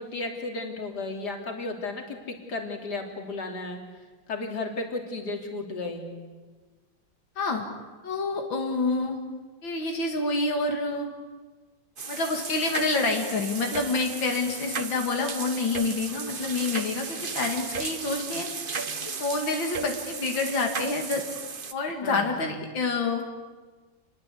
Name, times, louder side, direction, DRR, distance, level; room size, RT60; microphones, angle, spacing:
voice 1, 0.0-3.8 4.3-6.1 22.0-22.6, left 2 dB, 60° left, 3 dB, 3.7 m, -34 dB
voice 2, 7.4-7.7 8.0-9.2 9.6-11.1 12.1-18.5 19.0-21.2 21.7-23.2, left 3 dB, 90° left, 2 dB, 2.9 m, -28 dB
Ur og Bruser, 12.0-21.7, right 5 dB, 35° right, 1.1 m, -35 dB
28.5 x 22.0 x 8.4 m, 1.3 s
omnidirectional pair, 2.0 m